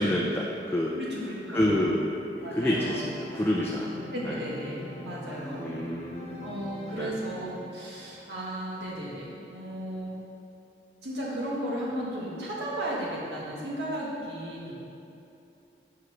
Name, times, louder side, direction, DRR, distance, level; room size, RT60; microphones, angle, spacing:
voice 1, 0.0-0.9 1.5-4.4 5.6-6.7 7.0-7.2, left 1 dB, 10° left, -2 dB, 0.4 m, -28 dB
voice 2, 0.9-1.8 2.4-3.0 4.1-5.6 6.4-10.2 11.0-14.7, equal, 75° right, -5 dB, 1.6 m, -35 dB
Organ, 2.3-8.1, left 1 dB, 40° left, 1.2 m, -42 dB
5.6 x 4.9 x 5.9 m, 2.8 s
head